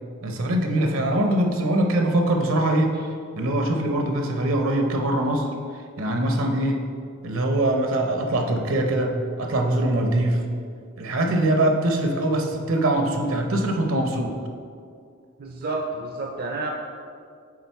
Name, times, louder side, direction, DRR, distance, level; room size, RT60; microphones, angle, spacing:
voice 1, 0.2-2.9 3.4-5.5 6.0-6.8 7.2-10.4 11.0-14.4, right 1 dB, 70° right, 3 dB, 0.8 m, -22 dB
voice 2, 15.4-16.7, right 2 dB, 45° right, 1 dB, 0.5 m, -30 dB
8.8 x 3.6 x 4.6 m, 2.3 s
head